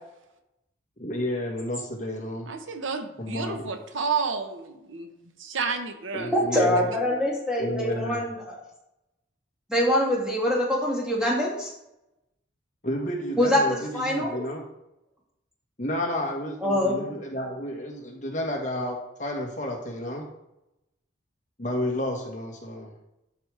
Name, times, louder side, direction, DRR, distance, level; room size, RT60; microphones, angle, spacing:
voice 1, 1.0-2.5 3.2-3.7 6.1-6.9 7.6-8.2 12.8-14.6 15.8-20.2 21.6-22.9, left 1 dB, 40° left, 0 dB, 1.4 m, -31 dB
voice 2, 2.5-5.1 5.4-6.6, right 5 dB, 80° right, 6 dB, 0.9 m, -31 dB
voice 3, 6.3-8.5 9.7-11.7 13.4-14.4 16.6-17.1, left 1 dB, 5° right, -4 dB, 1.9 m, -24 dB
12.0 x 4.9 x 3.3 m, 0.87 s
head